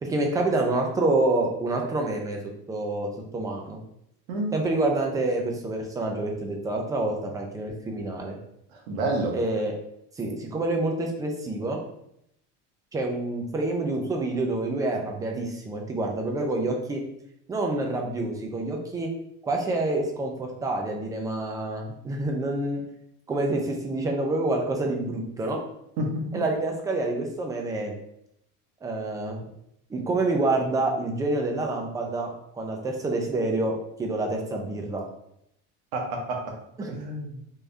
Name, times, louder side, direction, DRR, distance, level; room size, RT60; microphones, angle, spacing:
voice 1, 0.0-2.4 2.7-3.8 4.5-8.4 9.3-9.7 10.2-11.8 12.9-17.0 17.5-19.1 19.4-22.8 23.3-25.6 26.3-27.9 28.8-29.4 29.9-35.0 36.8-36.9, right 2 dB, 10° right, 1 dB, 0.4 m, -27 dB
voice 2, 8.9-9.4 26.0-26.4 35.9-36.6 36.9-37.4, right 1 dB, 80° right, 1 dB, 1.1 m, -29 dB
3.5 x 2.6 x 3.3 m, 0.76 s
cardioid pair, 160°, 32 cm